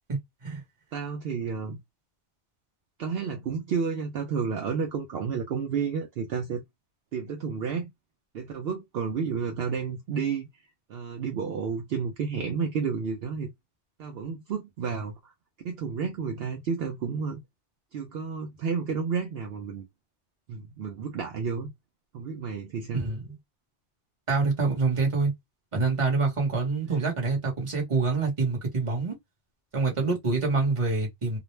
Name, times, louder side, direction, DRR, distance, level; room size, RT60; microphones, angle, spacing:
voice 1, 0.1-0.6 22.9-23.4 24.3-25.3 25.7-29.1 29.7-31.4, right 3 dB, 30° right, 1.0 m, -26 dB
voice 2, 0.9-1.8 3.0-6.6 7.1-7.9 8.3-10.5 10.9-13.5 14.0-15.3 15.6-17.4 17.9-19.9 20.5-21.7 22.1-23.0, right 6 dB, 65° right, 0.8 m, -31 dB
2.4 x 2.0 x 3.1 m
omnidirectional pair, 1.2 m